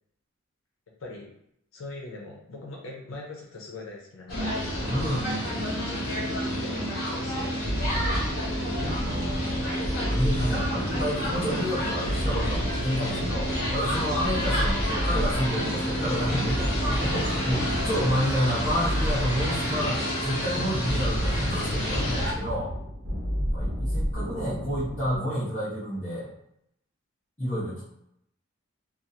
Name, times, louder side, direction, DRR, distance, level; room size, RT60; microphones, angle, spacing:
voice 1, 1.0-1.4 1.7-5.1 5.6-7.9 17.1-17.2, left 2 dB, 75° left, -2 dB, 0.6 m, -42 dB
sound 1, 4.3-22.3, equal, 45° left, 1.1 m, -30 dB
voice 2, 4.9-5.3 8.8-22.7 23.5-26.3 27.4-27.8, equal, 30° left, -11 dB, 0.9 m, -30 dB
sound 2, 7.6-25.2, equal, 75° right, 1.1 m, -31 dB
2.7 x 2.3 x 2.7 m, 0.75 s
head